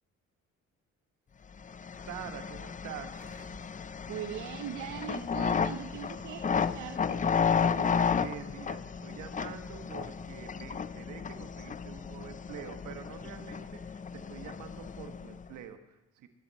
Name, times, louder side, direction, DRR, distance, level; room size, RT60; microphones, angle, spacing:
sound 1, 1.6-15.5, left 6 dB, 25° left, 0.5 m, -33 dB
voice 1, 1.9-3.3 7.5-16.3, right 9 dB, 90° right, 7 dB, 1.5 m, -46 dB
Gurgling, 3.1-10.7 11.0-11.1, right 3 dB, 30° right, 3.4 m, -56 dB
voice 2, 4.1-7.3, right 11 dB, 70° right, 8 dB, 0.7 m, -41 dB
23.0 x 9.5 x 4.2 m, 0.92 s
cardioid pair, 90°, 30 cm